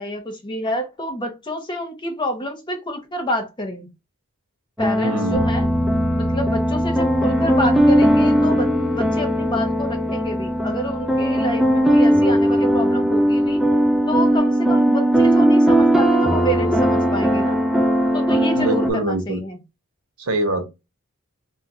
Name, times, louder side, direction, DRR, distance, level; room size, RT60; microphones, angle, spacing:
voice 1, 0.0-3.9 4.8-5.7 6.2-13.6 14.1-17.6 18.1-19.6, equal, 20° left, 0.7 m, -28 dB
sound 1, 4.8-18.9, equal, ahead, 0.3 m, -19 dB
voice 2, 5.0-5.4 18.5-19.4 20.2-20.7, right 1 dB, 80° right, 0.9 m, -24 dB
sound 2, 5.3-14.4, equal, 20° right, 1.1 m, -26 dB
2.4 x 2.4 x 4.0 m
head